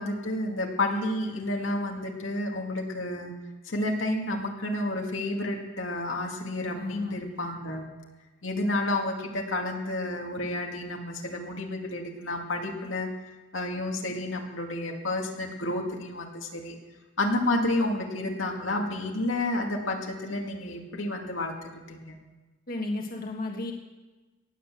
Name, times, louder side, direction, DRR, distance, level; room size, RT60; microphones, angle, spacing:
voice 1, 0.0-3.3 3.7-7.8 8.4-13.1 13.5-16.8 17.2-21.5 21.9-22.2, left 1 dB, 85° left, 1 dB, 2.2 m, -30 dB
voice 2, 6.7-7.2 22.7-23.7, left 2 dB, 45° left, 0 dB, 1.5 m, -33 dB
18.5 x 8.2 x 7.6 m, 1.2 s
head